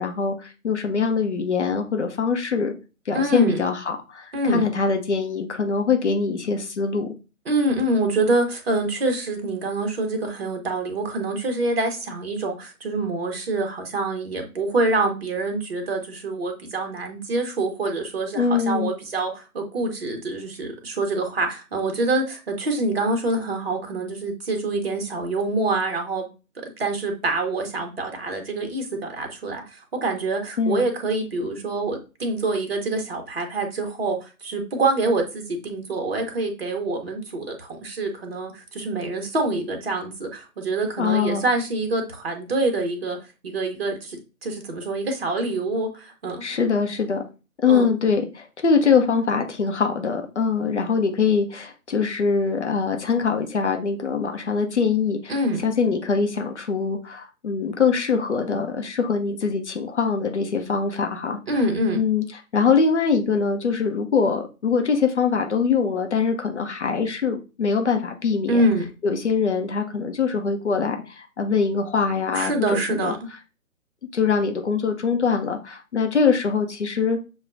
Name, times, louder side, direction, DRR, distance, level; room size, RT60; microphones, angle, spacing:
voice 1, 0.0-2.7 3.1-7.1 18.3-18.9 30.6-30.8 41.0-41.4 46.4-47.2 47.6-61.6 62.0-62.2 62.5-68.6 69.0-73.1 74.1-77.2, left 5 dB, 55° left, 4 dB, 0.7 m, -23 dB
voice 2, 3.1-3.6 4.3-4.7 7.5-26.3 26.6-43.2 43.4-46.5 47.7-47.9 55.3-55.6 61.5-62.0 68.5-68.8 72.3-73.2, right 2 dB, 45° right, 4 dB, 1.0 m, -25 dB
6.9 x 2.3 x 2.5 m, 0.31 s
figure-of-eight pair, 145°, 43 cm